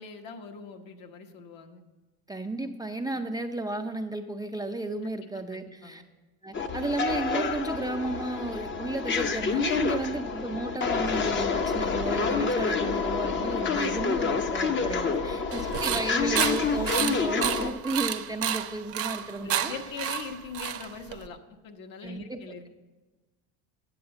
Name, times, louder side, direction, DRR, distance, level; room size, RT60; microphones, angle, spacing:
voice 1, 0.0-1.8 3.1-3.3 5.1-6.0 9.7-9.8 10.1-10.6 15.1-15.4 15.8-16.0 19.4-21.4 21.6-22.7, left 6 dB, 55° left, 5 dB, 1.4 m, -43 dB
voice 2, 2.3-6.0 6.4-19.8 22.0-22.4, right 2 dB, 10° right, 4 dB, 0.5 m, -33 dB
sound 1, 6.5-17.7, left 5 dB, 30° left, 0.8 m, -28 dB
sound 2, 15.5-21.3, right 10 dB, 35° right, 0.8 m, -31 dB
9.7 x 7.8 x 6.7 m, 1.2 s
supercardioid pair, 110°, 40 cm